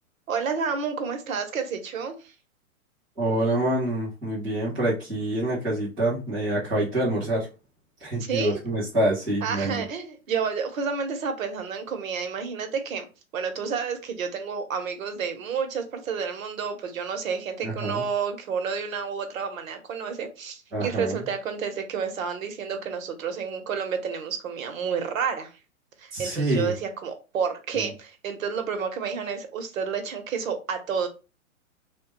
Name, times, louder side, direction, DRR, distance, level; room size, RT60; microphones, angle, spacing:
voice 1, 0.3-2.3 8.2-8.6 9.4-13.1 13.3-25.5 26.0-31.1, right 6 dB, 70° right, 1.0 m, -30 dB
voice 2, 3.2-7.5 8.0-9.8 17.6-18.0 20.7-21.1 26.1-26.7 27.7-27.9, right 1 dB, 5° right, 0.3 m, -26 dB
3.1 x 2.2 x 3.0 m
hypercardioid pair, 140°, 42 cm